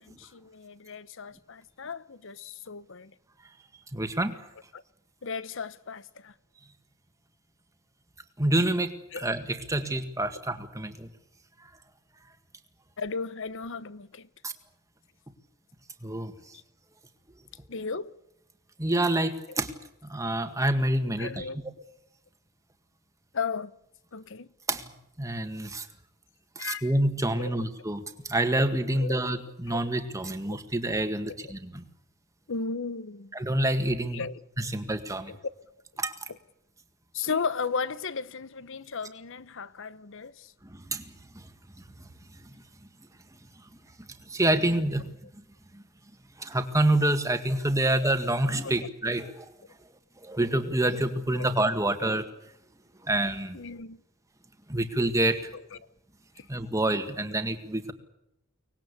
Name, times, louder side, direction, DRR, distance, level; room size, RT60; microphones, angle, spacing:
voice 1, 0.0-3.1 4.7-4.8 5.2-6.3 9.1-9.3 13.0-14.3 17.7-18.1 21.2-21.8 23.3-23.7 24.1-24.5 26.6-26.9 27.4-27.6 28.9-29.1 29.7-29.8 31.4-31.5 32.5-33.3 34.1-34.4 35.3-35.4 36.3-36.4 37.1-40.5 48.6-48.7 51.3-51.5 52.2-52.3 53.5-54.0 55.5-55.6 56.4-56.5, left 5 dB, 60° left, 0.9 m, -35 dB
voice 2, 3.9-4.4 8.4-11.1 14.4-14.5 16.0-16.3 18.8-19.7 20.0-21.5 24.7-24.9 25.2-25.9 26.6-31.8 33.3-34.2 34.6-35.3 36.0-36.3 40.6-41.5 42.4-42.5 44.3-45.1 45.7-45.8 46.4-49.5 50.2-52.3 53.0-53.6 54.7-55.5 56.5-57.9, right 1 dB, 15° right, 1.9 m, -27 dB
24.0 x 20.0 x 8.5 m
head